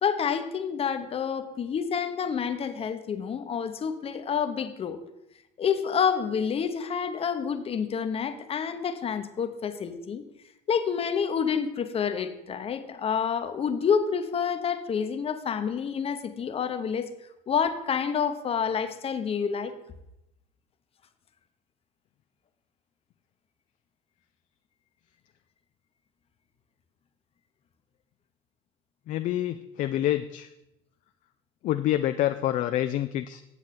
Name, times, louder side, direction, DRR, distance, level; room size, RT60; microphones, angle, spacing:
voice 1, 0.0-5.0 5.6-10.2 10.7-17.1 17.5-19.8, left 7 dB, 40° left, 9 dB, 0.9 m, -28 dB
voice 2, 29.1-30.5 31.6-33.4, left 13 dB, 55° left, 9 dB, 0.4 m, -27 dB
8.2 x 7.2 x 4.2 m, 0.86 s
supercardioid pair, 80°, 16 cm